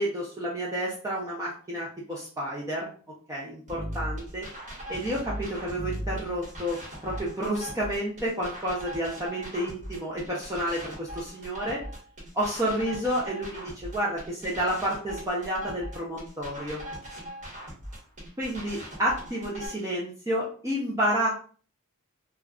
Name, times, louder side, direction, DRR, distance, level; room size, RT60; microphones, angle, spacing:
voice 1, 0.0-2.9 3.3-4.5 4.9-11.8 12.3-16.8 18.4-21.3, equal, 15° right, -5 dB, 0.4 m, -30 dB
sound 1, 3.7-19.7, equal, 35° right, 1.0 m, -39 dB
2.3 x 2.1 x 3.5 m, 0.42 s
head